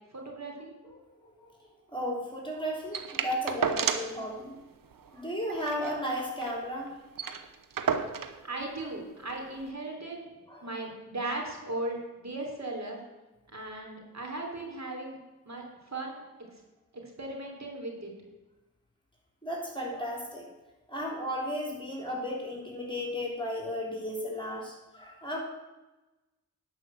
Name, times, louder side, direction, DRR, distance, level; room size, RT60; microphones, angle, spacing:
voice 1, 0.1-0.7 8.4-10.3 10.6-13.0 13.5-15.2 15.5-16.2 16.9-18.1, right 2 dB, 50° right, 0 dB, 3.6 m, -37 dB
voice 2, 1.2-1.5 1.9-4.5 5.1-6.9 10.5-10.7 19.4-20.5 20.9-25.4, equal, 15° left, -1 dB, 3.4 m, -34 dB
sound 1, 2.9-4.2 4.5-4.6 4.9-5.1 5.5-6.6 6.9-7.0 7.1-8.4 9.3-9.4, right 6 dB, 70° right, 1.0 m, -32 dB
11.0 x 5.6 x 7.7 m, 1.1 s
cardioid pair, 40°, 35 cm